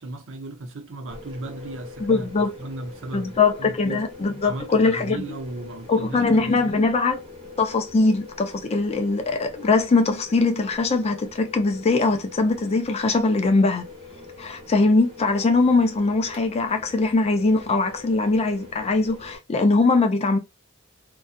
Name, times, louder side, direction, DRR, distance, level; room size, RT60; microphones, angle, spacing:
voice 1, 0.0-4.0 4.4-6.8, right 2 dB, 65° right, 0.7 m, -36 dB
sound 1, 1.1-19.4, left 3 dB, 25° right, 1.0 m, -43 dB
voice 2, 2.0-2.6 3.1-5.2 5.9-7.2 7.6-13.8 14.4-20.4, left 3 dB, 30° left, 0.4 m, -21 dB
2.7 x 2.2 x 2.3 m
head